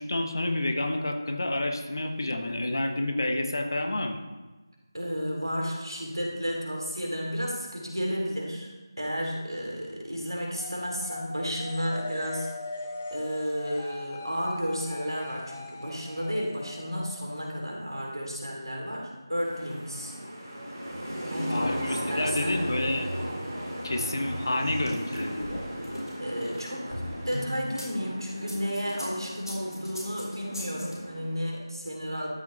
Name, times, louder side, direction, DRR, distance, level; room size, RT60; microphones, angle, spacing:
voice 1, 0.0-4.2 21.5-23.1 23.8-25.6, left 1 dB, 55° left, 5 dB, 1.1 m, -29 dB
voice 2, 4.9-12.5 13.1-20.1 21.3-22.6 26.2-32.3, equal, 80° right, -1 dB, 2.9 m, -32 dB
sound 1, 10.6-18.1, left 3 dB, 25° left, 1.0 m, -41 dB
sound 2, 19.4-31.4, equal, 45° right, 3.0 m, -36 dB
sound 3, 24.6-27.9 28.4-30.9, equal, 70° left, 3.3 m, -39 dB
12.5 x 7.2 x 3.2 m, 1.2 s
figure-of-eight pair, 165°, 2 cm